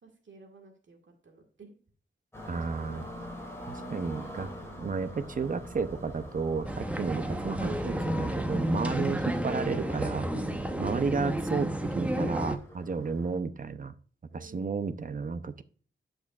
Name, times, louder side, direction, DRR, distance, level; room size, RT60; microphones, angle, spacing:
voice 1, 0.0-1.8 2.5-3.0 14.3-14.8, right 4 dB, 65° right, 2 dB, 1.8 m, -53 dB
sound 1, 2.3-13.4, equal, 10° left, 2.5 m, -45 dB
voice 2, 2.5-3.0 3.7-4.5 4.8-10.3 10.8-13.9 14.3-15.6, right 5 dB, 40° right, 12 dB, 0.6 m, -32 dB
sound 2, 6.6-12.6, right 1 dB, 5° right, 0.7 m, -31 dB
10.5 x 6.2 x 2.4 m, 0.43 s
wide cardioid pair, 160°, 21 cm